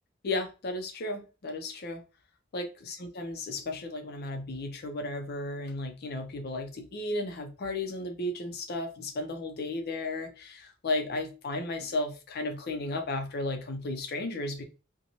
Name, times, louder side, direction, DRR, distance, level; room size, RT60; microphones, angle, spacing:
voice 1, 0.2-2.0 2.5-14.6, left 2 dB, 50° left, 0.5 m, -34 dB
2.9 x 2.2 x 2.6 m
head